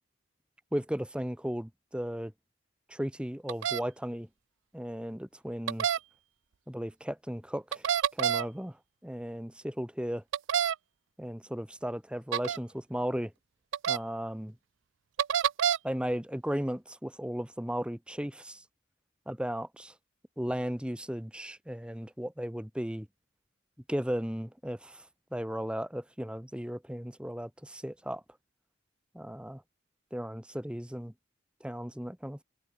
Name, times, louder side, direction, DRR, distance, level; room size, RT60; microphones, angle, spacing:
voice 1, 0.7-2.3 2.9-4.3 4.7-5.9 6.7-8.8 9.0-10.2 11.2-13.3 13.9-14.5 15.8-18.6 19.3-19.9 20.4-23.1 23.9-25.1 25.3-28.2 29.1-29.6 30.1-31.1 31.6-32.4, equal, 5° right, 1.1 m, -35 dB
sound 1, 3.5-3.8 5.7-6.0 7.7-8.5 10.3-10.8 12.3-12.6 13.7-14.0 15.2-15.8, right 9 dB, 75° right, 0.4 m, -27 dB
head